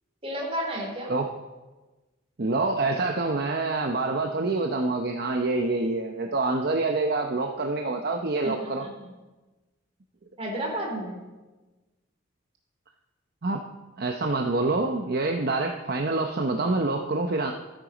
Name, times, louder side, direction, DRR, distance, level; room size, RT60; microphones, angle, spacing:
voice 1, 0.2-1.1 8.4-9.1 10.4-11.2, right 1 dB, 30° right, -1 dB, 3.5 m, -32 dB
voice 2, 2.4-8.9 13.4-13.6 14.0-17.5, right 3 dB, 55° right, 3 dB, 0.8 m, -26 dB
14.0 x 9.0 x 5.1 m, 1.2 s
head